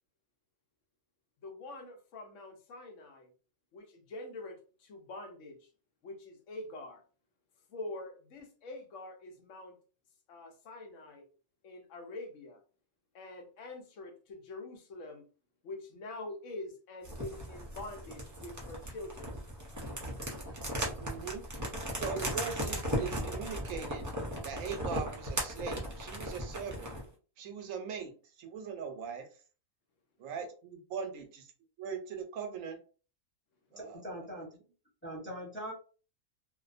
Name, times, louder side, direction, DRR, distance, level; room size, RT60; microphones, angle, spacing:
voice 1, 1.4-3.3 3.7-5.6 6.0-7.0 7.7-9.8 10.3-11.3 11.6-12.6 13.1-15.3 15.6-19.3, left 2 dB, 70° left, 4 dB, 0.9 m, -45 dB
sound 1, 17.0-27.1, equal, 25° right, 0.4 m, -37 dB
voice 2, 21.0-21.5 21.9-24.1 24.4-26.9 27.4-29.3 30.2-31.2 31.8-32.8 33.7-34.0, right 6 dB, 90° right, 5 dB, 1.0 m, -40 dB
voice 3, 33.8-34.5 35.0-35.7, equal, 10° left, -5 dB, 0.7 m, -41 dB
2.6 x 2.1 x 2.4 m, 0.37 s
omnidirectional pair, 1.4 m